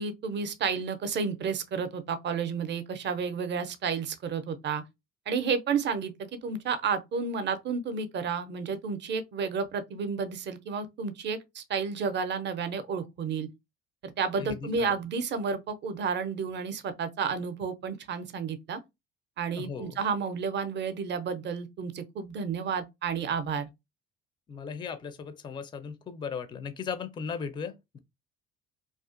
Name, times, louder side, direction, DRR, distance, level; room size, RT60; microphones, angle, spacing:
voice 1, 0.0-4.8 5.3-6.1 6.4-13.5 14.0-18.8 19.4-23.7, right 5 dB, 35° right, 0.5 m, -31 dB
voice 2, 14.4-15.0 19.6-20.0 24.5-28.0, left 6 dB, 15° left, 0.4 m, -37 dB
2.4 x 2.3 x 2.4 m
figure-of-eight pair, 55°, 34 cm